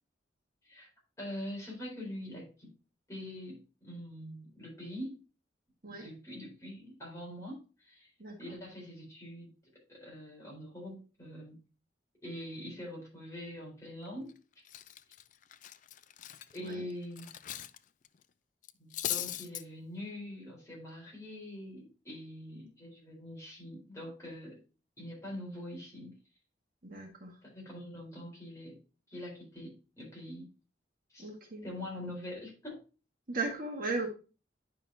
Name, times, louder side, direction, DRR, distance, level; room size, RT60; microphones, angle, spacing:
voice 1, 1.2-2.7 3.1-5.2 5.9-8.1 8.4-9.5 9.9-11.6 12.2-14.4 16.5-17.3 18.8-24.6 25.0-26.2 27.4-28.8 29.1-30.5 31.1-31.3 31.6-32.8, left 1 dB, 15° left, -3 dB, 4.0 m, -44 dB
voice 2, 8.2-8.6 16.6-16.9 26.8-27.4 31.2-31.6 33.3-34.1, right 3 dB, 50° right, 1 dB, 1.6 m, -37 dB
Cutlery silverware, 14.1-14.3 14.7-17.8 18.0-18.2 18.6-19.6, left 12 dB, 45° left, 0.4 m, -39 dB
9.8 x 5.6 x 2.8 m, 0.33 s
head